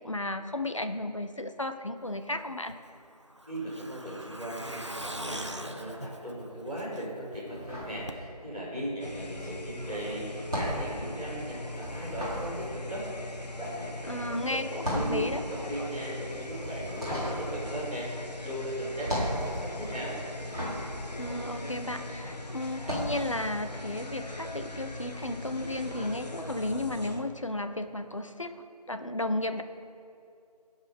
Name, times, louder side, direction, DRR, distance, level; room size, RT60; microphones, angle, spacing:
voice 1, 0.0-2.8 14.1-15.4 21.1-29.6, left 1 dB, 50° left, 9 dB, 0.7 m, -34 dB
Truck, 2.7-7.4 7.7-7.8 8.1-8.2, right 1 dB, 45° right, 0.5 m, -41 dB
voice 2, 3.5-18.1 18.4-20.2, right 1 dB, 10° left, -16 dB, 2.8 m, -38 dB
sound 1, 7.5-8.7 9.0-22.1 22.7-23.2, equal, 10° right, 2.7 m, -36 dB
sound 2, 9.0-27.2, left 1 dB, 75° left, 1.5 m, -40 dB
16.5 x 5.5 x 5.2 m, 2.6 s
figure-of-eight pair, 180°, 21 cm